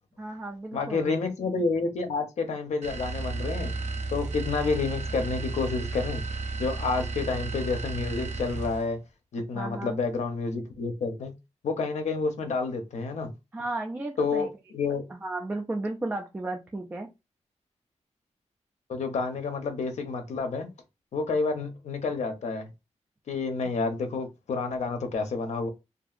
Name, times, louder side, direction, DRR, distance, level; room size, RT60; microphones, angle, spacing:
voice 1, 0.2-1.2 9.5-10.0 13.5-14.5 15.1-17.1, right 2 dB, 15° right, 0.3 m, -34 dB
voice 2, 0.7-3.7 4.1-6.2 6.6-9.0 9.3-11.3 11.6-13.3 14.2-15.0 18.9-20.7 21.1-22.7 23.3-25.7, left 4 dB, 70° left, 0.6 m, -29 dB
sound 1, 2.8-9.0, right 3 dB, 70° right, 0.5 m, -33 dB
2.7 x 2.5 x 2.4 m
wide cardioid pair, 140°, 12 cm